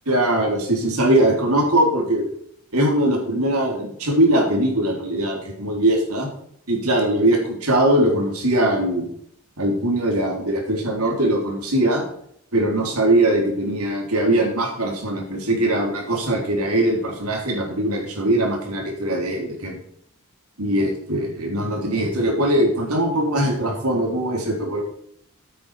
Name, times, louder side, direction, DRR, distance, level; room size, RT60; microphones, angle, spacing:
voice 1, 0.1-2.2 2.7-6.3 6.7-9.1 9.6-12.0 12.5-19.8 20.6-24.8, right 1 dB, 85° right, 1 dB, 3.7 m, -21 dB
9.1 x 8.7 x 5.0 m, 0.69 s
head